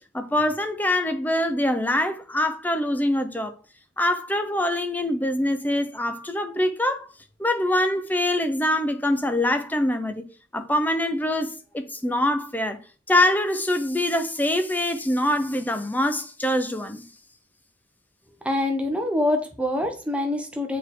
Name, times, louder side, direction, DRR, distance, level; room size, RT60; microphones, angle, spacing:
voice 1, 0.1-3.5 4.0-7.1 7.4-10.2 10.5-12.8 13.1-17.0, left 1 dB, 10° left, 0.7 m, -24 dB
voice 2, 18.4-20.8, left 1 dB, 5° right, 1.0 m, -25 dB
7.1 x 4.6 x 3.8 m
head